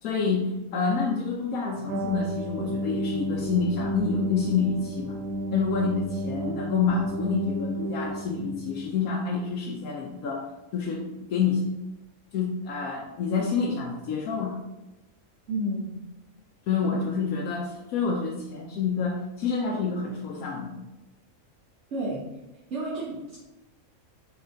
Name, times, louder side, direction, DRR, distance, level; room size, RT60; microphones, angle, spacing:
voice 1, 0.0-5.2 5.5-10.5 10.7-11.6 12.3-14.6 16.7-20.8, left 5 dB, 85° left, -1 dB, 1.1 m, -28 dB
sound 1, 1.9-9.0, right 1 dB, 80° right, 1.1 m, -31 dB
voice 2, 15.5-16.1 16.8-16.9 21.9-22.2 22.7-23.4, right 1 dB, 60° right, -5 dB, 1.2 m, -31 dB
4.5 x 3.2 x 3.7 m, 1.0 s
omnidirectional pair, 1.5 m